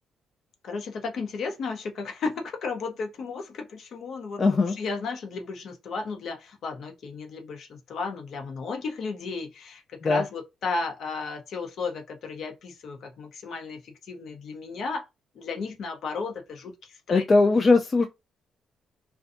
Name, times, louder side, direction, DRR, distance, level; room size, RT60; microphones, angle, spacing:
voice 1, 0.6-15.0 15.3-17.2, left 4 dB, 65° left, 0.7 m, -34 dB
voice 2, 4.4-4.8 10.0-10.2 17.1-18.1, left 3 dB, 35° left, 0.3 m, -20 dB
2.6 x 2.2 x 2.5 m
cardioid pair, 90°, 0 cm